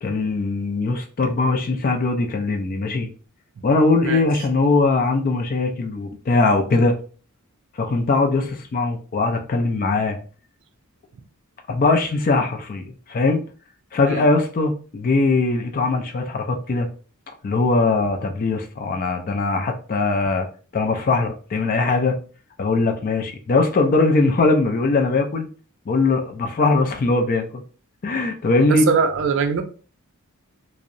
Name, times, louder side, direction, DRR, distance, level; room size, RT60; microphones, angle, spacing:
voice 1, 0.0-3.1 3.6-6.9 7.8-10.2 11.7-13.4 13.9-16.9 17.4-20.5 20.7-22.2 22.6-25.5 25.9-27.5 28.0-28.9, left 3 dB, 40° left, 5 dB, 0.4 m, -20 dB
voice 2, 28.7-29.6, right 5 dB, 55° right, 7 dB, 0.3 m, -21 dB
2.7 x 2.0 x 2.5 m, 0.39 s
head